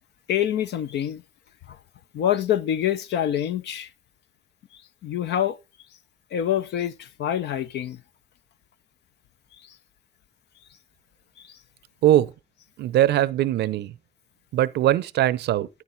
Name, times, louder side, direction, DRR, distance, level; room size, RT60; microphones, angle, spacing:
voice 1, 0.3-1.2 1.7-1.8 2.1-3.9 5.0-5.6 6.3-8.0 11.4-11.6, left 10 dB, 70° left, 0.7 m, -26 dB
voice 2, 12.0-12.3 12.8-13.9 14.5-15.7, right 13 dB, 70° right, 0.6 m, -21 dB
9.6 x 9.3 x 3.9 m
supercardioid pair, 55°, 18 cm